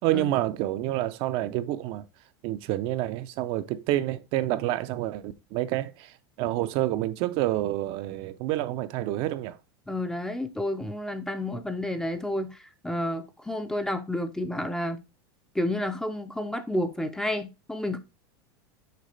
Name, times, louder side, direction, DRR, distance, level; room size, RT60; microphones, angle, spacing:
voice 1, 0.0-2.1 2.4-6.1 6.4-9.6, right 14 dB, 45° right, 0.5 m, -28 dB
voice 2, 9.9-15.0 15.5-18.0, left 1 dB, 5° left, 0.5 m, -30 dB
6.6 x 4.7 x 3.2 m
supercardioid pair, 150°, 13 cm